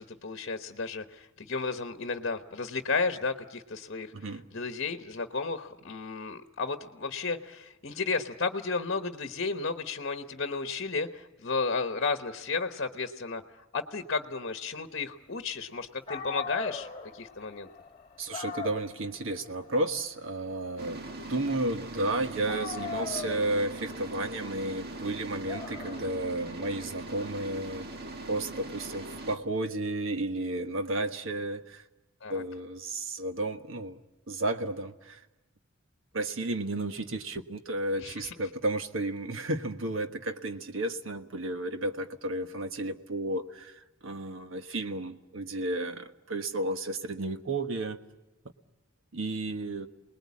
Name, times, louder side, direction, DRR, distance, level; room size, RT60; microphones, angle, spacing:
voice 1, 0.0-13.4 13.7-16.9 17.1-17.7 32.2-32.4 38.0-38.3, left 4 dB, 55° left, 7 dB, 1.1 m, -33 dB
voice 2, 4.1-4.4 18.2-27.9 28.3-31.8 32.3-34.0 34.3-35.2 36.1-48.0 49.1-49.9, right 2 dB, 70° right, 7 dB, 1.4 m, -32 dB
Dog, 15.8-15.9 16.1-22.1 22.4-29.2, left 6 dB, 25° left, 2.0 m, -42 dB
sound 1, 20.8-29.4, right 2 dB, 50° right, 1.9 m, -41 dB
29.0 x 20.5 x 8.5 m, 1.0 s
head